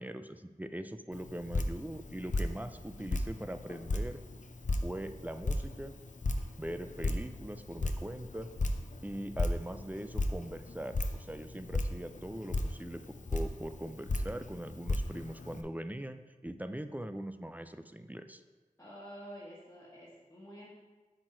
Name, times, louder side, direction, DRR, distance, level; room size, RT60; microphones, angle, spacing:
voice 1, 0.0-4.2 4.8-5.9 6.6-8.5 9.0-18.4, right 1 dB, 10° right, 9 dB, 0.4 m, -41 dB
Drip, 1.1-15.6, left 2 dB, 60° left, 0.6 m, -36 dB
voice 2, 18.8-20.7, equal, 20° left, -8 dB, 1.6 m, -49 dB
7.7 x 4.7 x 4.4 m, 1.3 s
wide cardioid pair, 50°, 14 cm